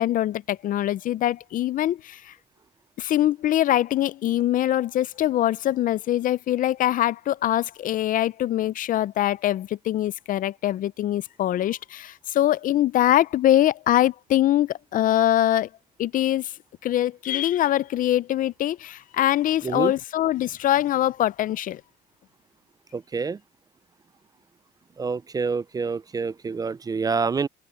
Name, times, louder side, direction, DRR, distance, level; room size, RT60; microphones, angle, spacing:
voice 1, 0.0-2.3 3.0-15.7 16.0-16.5 16.8-21.8, left 13 dB, 55° left, 0.5 m, -23 dB
voice 2, 22.9-23.4 25.0-27.5, right 5 dB, 20° right, 0.4 m, -27 dB
open air
cardioid pair, 110°, 17 cm